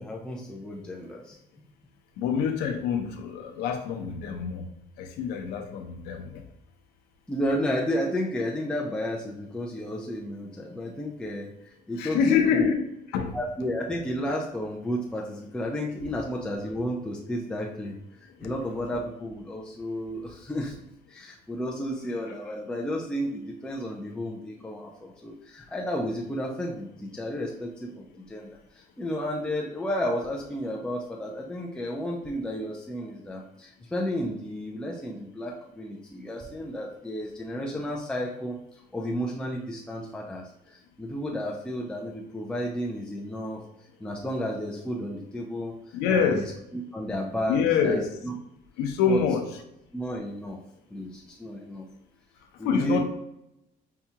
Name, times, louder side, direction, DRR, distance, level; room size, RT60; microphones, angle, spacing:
voice 1, 0.0-1.4 7.3-12.7 13.3-20.8 21.1-43.6 44.0-48.4 49.1-49.2 49.9-50.6 50.9-51.9 52.6-53.0, equal, 5° left, -2 dB, 0.5 m, -32 dB
voice 2, 2.2-3.1 3.6-4.6 5.2-6.2 12.0-12.8 13.1-13.3 45.9-46.4 47.5-48.1 48.8-49.4 52.7-53.0, left 6 dB, 90° left, 5 dB, 0.6 m, -25 dB
5.5 x 2.3 x 2.8 m, 0.80 s
cardioid pair, 115°, 17 cm